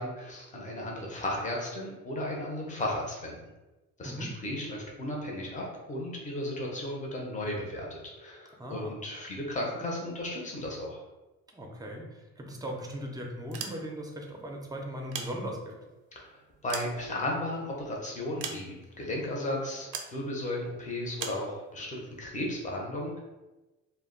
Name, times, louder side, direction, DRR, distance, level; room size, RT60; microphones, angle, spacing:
voice 1, 0.0-3.4 4.0-11.0 16.1-23.2, left 1 dB, 25° left, -2 dB, 0.7 m, -35 dB
voice 2, 8.5-8.9 11.5-15.8, equal, 10° right, 1 dB, 0.6 m, -38 dB
sound 1, 13.4-14.2 14.9-15.9 16.4-17.6 18.4-19.0 19.9-20.2 21.2-21.5, right 6 dB, 85° right, 0.5 m, -40 dB
2.2 x 2.1 x 3.7 m, 1.1 s
cardioid pair, 90°, 30 cm